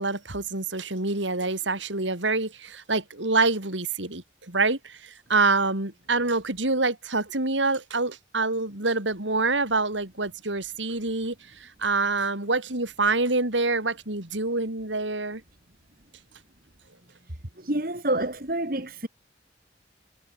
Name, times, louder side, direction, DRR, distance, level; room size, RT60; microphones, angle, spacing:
voice 1, 0.0-15.4, right 3 dB, 85° right, 4.3 m, -26 dB
voice 2, 17.6-19.1, right 1 dB, 50° right, 2.5 m, -28 dB
head